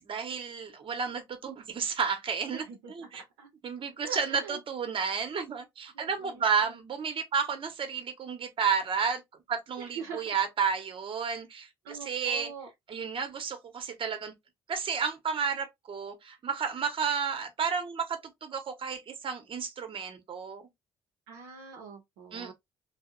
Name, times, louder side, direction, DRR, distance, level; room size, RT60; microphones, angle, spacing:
voice 1, 0.0-2.6 2.9-3.2 3.6-9.2 9.5-12.5 12.9-14.3 14.7-20.6 22.3-22.5, right 6 dB, 45° right, 0.8 m, -32 dB
voice 2, 2.5-3.5 4.0-4.6 5.9-6.8 9.8-10.3 11.8-12.7 21.3-22.5, right 5 dB, 85° right, 0.5 m, -44 dB
2.6 x 2.0 x 2.4 m
hypercardioid pair, 55°, 12 cm